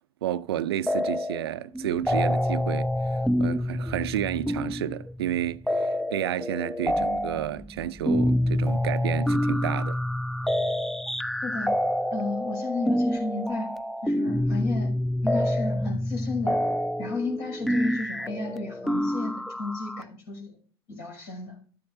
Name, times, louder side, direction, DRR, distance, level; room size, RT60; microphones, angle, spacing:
voice 1, 0.2-2.9 3.4-10.0, right 11 dB, 75° right, 0.4 m, -31 dB
sound 1, 0.9-1.5 1.7-20.0, left 1 dB, ahead, 0.3 m, -27 dB
voice 2, 11.4-11.7 12.1-13.7 14.0-14.9 15.2-16.6 17.0-20.6 20.9-21.6, left 3 dB, 70° left, 6.2 m, -32 dB
13.5 x 9.6 x 2.7 m
figure-of-eight pair, 70°, 13 cm